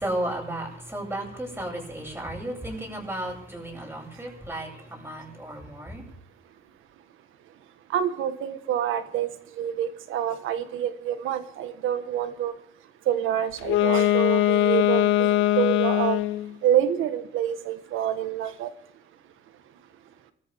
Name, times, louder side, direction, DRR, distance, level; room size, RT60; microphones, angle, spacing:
voice 1, 0.0-6.0, right 1 dB, 10° right, 1 dB, 7.7 m, -34 dB
voice 2, 7.9-9.3 9.6-12.5 13.1-16.2 16.6-18.7, right 10 dB, 90° right, 11 dB, 1.4 m, -27 dB
Wind instrument woodwind instrument, 13.6-16.5, left 14 dB, 85° left, 0.7 m, -21 dB
25.5 x 14.0 x 3.6 m, 0.69 s
cardioid pair, 90°, 20 cm